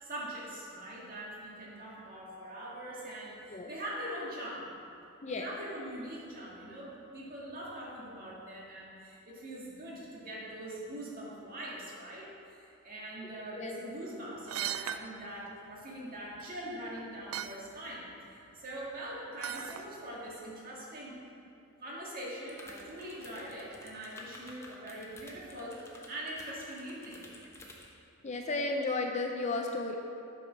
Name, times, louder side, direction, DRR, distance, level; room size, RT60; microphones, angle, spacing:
voice 1, 0.0-4.7 5.3-21.2 21.8-27.2, right 1 dB, 40° right, -5 dB, 1.9 m, -42 dB
sound 1, 14.5-15.0 16.4-16.5 17.0-17.1 17.3-17.6 19.4-19.8 20.3-20.4, right 10 dB, 65° right, 0.3 m, -36 dB
sound 2, 22.5-27.9, left 1 dB, 10° left, 0.9 m, -52 dB
voice 2, 28.2-30.0, left 3 dB, 30° left, 2 dB, 0.5 m, -33 dB
8.7 x 5.3 x 6.1 m, 2.7 s
head